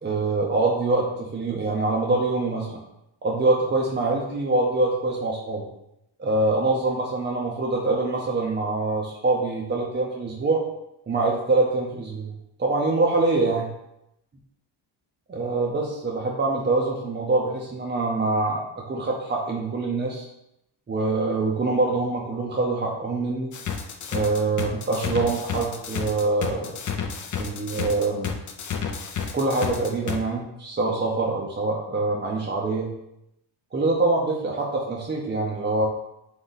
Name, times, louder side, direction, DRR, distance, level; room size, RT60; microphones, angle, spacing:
voice 1, 0.0-2.8 3.2-5.6 6.2-10.6 11.1-12.3 12.6-13.7 15.3-20.3 20.9-23.5 24.1-26.7 27.4-28.3 29.3-32.9 33.7-35.9, right 3 dB, 25° right, -2 dB, 0.6 m, -24 dB
sound 1, 23.5-30.2, left 7 dB, 45° left, 0.5 m, -30 dB
3.8 x 3.0 x 4.0 m, 0.83 s
wide cardioid pair, 135°, 43 cm